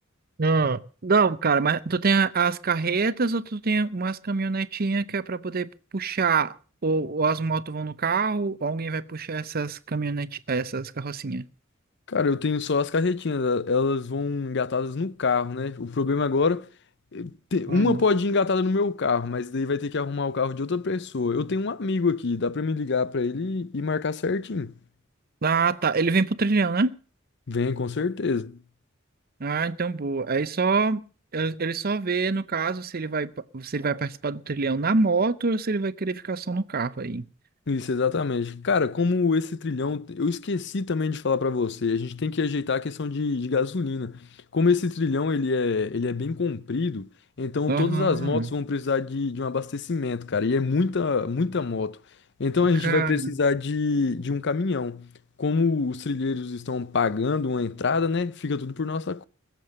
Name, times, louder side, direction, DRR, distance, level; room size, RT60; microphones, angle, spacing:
voice 1, 0.4-6.5 6.8-11.4 17.7-18.0 25.4-27.0 29.4-31.0 31.3-37.3 47.7-48.5 52.8-53.3, right 4 dB, 45° right, 0.7 m, -25 dB
voice 2, 12.1-16.7 17.1-24.7 27.5-28.6 37.7-44.3 44.5-47.1 47.4-52.0 52.4-55.1 55.4-59.3, left 4 dB, 60° left, 0.6 m, -25 dB
21.0 x 7.6 x 6.6 m
head